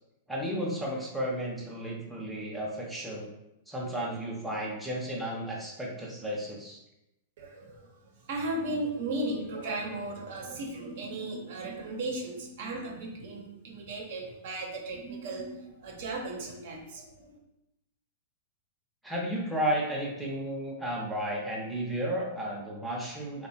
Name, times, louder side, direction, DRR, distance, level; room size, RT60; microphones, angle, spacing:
voice 1, 0.3-3.3 3.7-6.8 19.0-23.5, right 1 dB, ahead, -4 dB, 0.5 m, -33 dB
voice 2, 7.4-8.0 8.2-17.4, right 2 dB, 65° right, 1 dB, 0.6 m, -36 dB
2.8 x 2.1 x 2.7 m, 0.88 s
hypercardioid pair, 125°, 0 cm